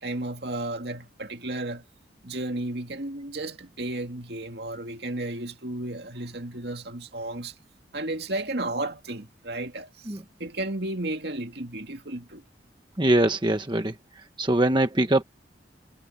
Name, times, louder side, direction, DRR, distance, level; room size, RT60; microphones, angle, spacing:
voice 1, 0.0-1.8 2.2-7.5 7.9-12.4, right 2 dB, 60° right, 2.3 m, -33 dB
voice 2, 13.0-13.9 14.4-15.2, right 1 dB, 25° right, 1.1 m, -22 dB
head